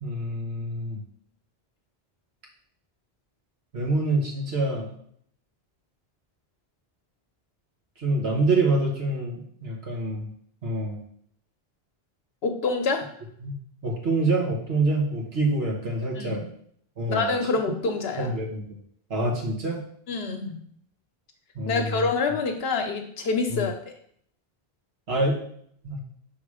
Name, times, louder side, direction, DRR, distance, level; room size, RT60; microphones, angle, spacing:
voice 1, 0.0-1.0 3.7-4.9 8.0-10.3 10.6-11.0 13.4-13.5 13.8-16.4 17.0-17.3 18.2-18.6 19.1-19.8 21.5-22.0 23.5-23.7 25.1-25.4 25.8-26.0, right 2 dB, 85° right, -2 dB, 1.6 m, -26 dB
voice 2, 12.4-13.1 16.2-16.4 17.1-18.4 20.1-20.6 21.7-24.0, left 4 dB, 75° left, 4 dB, 0.9 m, -27 dB
5.8 x 3.5 x 4.8 m, 0.65 s
omnidirectional pair, 1.0 m